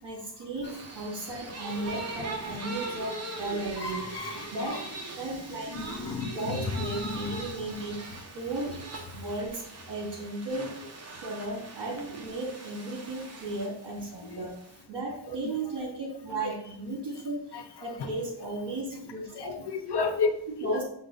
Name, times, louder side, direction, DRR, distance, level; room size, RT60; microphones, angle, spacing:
voice 1, 0.0-4.1 4.5-4.9 5.2-8.1 8.3-8.8 9.1-10.8 11.1-19.6 20.5-20.8, right 2 dB, 65° right, -2 dB, 2.7 m, -35 dB
sound 1, 0.6-14.8, right 3 dB, 35° right, 1.1 m, -41 dB
voice 2, 3.8-4.5 5.7-6.8 7.0-7.3 14.3-14.4 16.4-16.5 17.5-17.6 19.4-20.3 20.6-20.8, left 4 dB, 60° left, 6 dB, 0.9 m, -31 dB
7.2 x 4.6 x 4.0 m, 0.70 s
wide cardioid pair, 180°, 45 cm